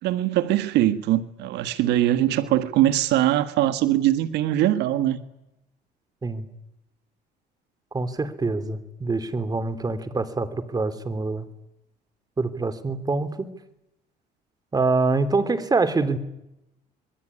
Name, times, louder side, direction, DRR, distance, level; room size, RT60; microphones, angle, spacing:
voice 1, 0.0-5.2, right 13 dB, 90° right, 1.6 m, -22 dB
voice 2, 7.9-11.5 12.4-13.5 14.7-16.2, right 3 dB, 20° right, 3.2 m, -25 dB
26.5 x 22.0 x 9.9 m
cardioid pair, 110°, 17 cm